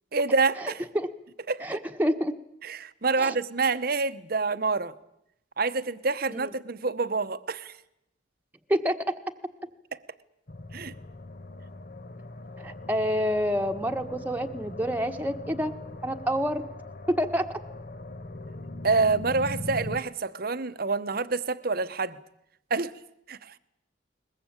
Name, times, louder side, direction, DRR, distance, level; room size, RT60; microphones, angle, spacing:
voice 1, 0.1-0.8 1.5-1.8 2.6-4.9 5.6-7.7 10.7-10.9 18.8-22.2 22.7-22.9 23.3-23.5, right 4 dB, 50° right, 1.0 m, -27 dB
voice 2, 1.6-2.3 3.2-3.4 6.3-6.5 8.7-9.0 12.6-15.7 16.0-16.6 17.1-17.5, equal, 10° right, 1.4 m, -27 dB
sound 1, 10.5-20.0, left 2 dB, 50° left, 1.2 m, -40 dB
22.0 x 21.0 x 8.9 m
head